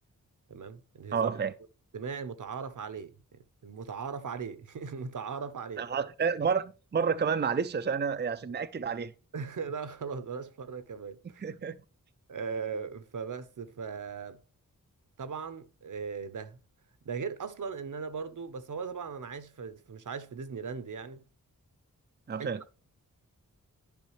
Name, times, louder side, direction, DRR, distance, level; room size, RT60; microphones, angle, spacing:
voice 1, 0.5-1.3 1.9-5.8 9.3-11.4 12.3-14.4 15.2-16.6 17.0-21.2 22.4-22.5, right 5 dB, 65° right, 0.9 m, -38 dB
voice 2, 1.1-1.5 5.8-9.1 11.4-11.8 22.3-22.6, right 6 dB, 30° right, 0.5 m, -30 dB
10.5 x 5.4 x 3.1 m
wide cardioid pair, 70°, 33 cm